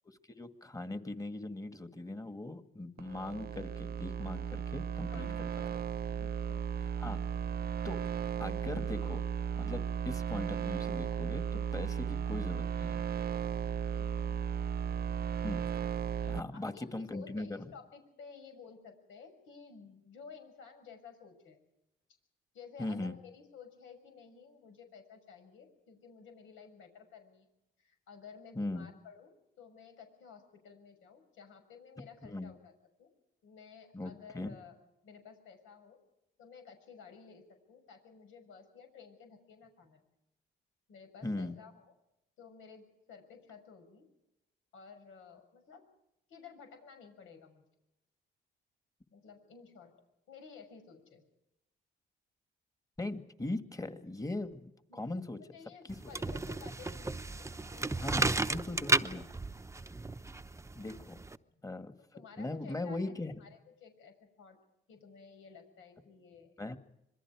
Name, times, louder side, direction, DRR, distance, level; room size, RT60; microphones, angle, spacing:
voice 1, 0.4-5.5 7.0-7.2 7.8-8.0 8.4-9.2 9.6-13.0 15.4-15.7 16.3-17.6 22.8-23.1 28.6-28.9 32.2-32.5 33.9-34.5 41.2-41.5 53.0-55.4 56.3-56.4 58.0-59.2 60.7-61.2 61.6-61.9 62.4-63.4 66.6-66.8, left 2 dB, 15° left, 8 dB, 2.1 m, -39 dB
sound 1, 3.0-16.4, right 8 dB, 50° right, 0.9 m, -35 dB
voice 2, 5.1-5.7 6.1-6.6 13.9-14.4 16.2-21.6 22.5-27.5 27.8-29.3 29.6-32.7 33.0-33.1 33.4-34.7 35.0-36.0 36.4-40.0 40.9-41.9 42.4-44.0 44.7-45.8 46.3-47.6 49.1-49.9 50.3-51.2 54.9-55.2 55.5-58.6 58.9-59.0 61.4-61.6 62.0-63.1 63.4-64.6 64.9-66.6, left 6 dB, 85° left, 6 dB, 6.4 m, -54 dB
sound 2, 55.9-61.4, right 2 dB, 15° right, 0.8 m, -33 dB
26.5 x 22.0 x 4.9 m, 0.88 s
cardioid pair, 90°, 20 cm